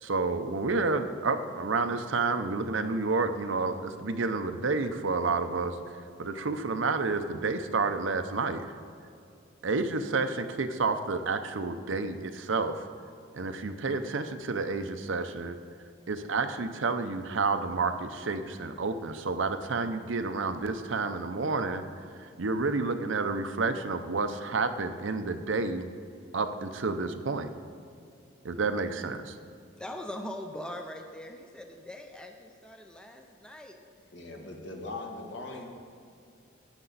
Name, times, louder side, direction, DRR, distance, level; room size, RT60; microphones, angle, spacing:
voice 1, 0.0-5.8 6.2-8.6 9.6-12.8 13.3-15.6 16.1-21.8 22.2-25.9 26.3-27.5 28.4-29.3, right 3 dB, 75° right, 8 dB, 0.7 m, -30 dB
voice 2, 29.7-33.8 35.5-35.6, left 1 dB, 5° left, 4 dB, 0.5 m, -41 dB
voice 3, 34.1-35.7, left 2 dB, 60° left, 1 dB, 1.5 m, -40 dB
13.5 x 8.8 x 4.1 m, 2.5 s
head